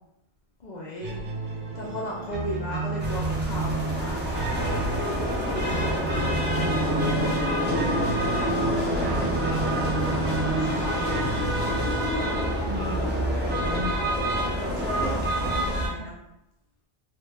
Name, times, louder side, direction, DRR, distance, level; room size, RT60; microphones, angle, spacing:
voice 1, 0.6-1.2 1.7-4.4 10.5-11.4 12.1-12.3 14.3-15.2 15.6-16.1, equal, 55° left, -3 dB, 0.5 m, -36 dB
sound 1, 1.0-14.0, right 3 dB, 50° right, 0.7 m, -32 dB
sound 2, 3.0-15.9, equal, 20° right, 0.3 m, -27 dB
sound 3, 6.1-12.1, equal, 80° left, 1.4 m, -41 dB
voice 2, 7.1-9.4 12.7-13.0 15.0-16.1, right 4 dB, 80° right, 2 dB, 0.9 m, -37 dB
2.8 x 2.1 x 3.2 m, 0.88 s
omnidirectional pair, 1.1 m